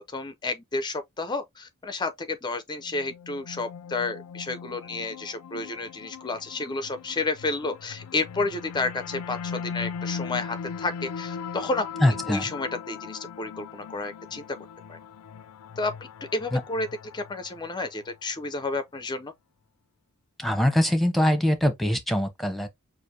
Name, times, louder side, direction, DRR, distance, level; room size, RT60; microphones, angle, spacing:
voice 1, 0.1-11.9 12.3-14.4 14.9-15.0 15.8-15.9 16.3-16.9 17.1-19.3, left 3 dB, 20° left, 0.5 m, -31 dB
sound 1, 2.8-18.1, left 6 dB, 85° left, 0.4 m, -39 dB
voice 2, 12.0-12.4 16.5-16.6 20.4-22.7, left 1 dB, ahead, 0.9 m, -23 dB
6.4 x 2.5 x 2.6 m
head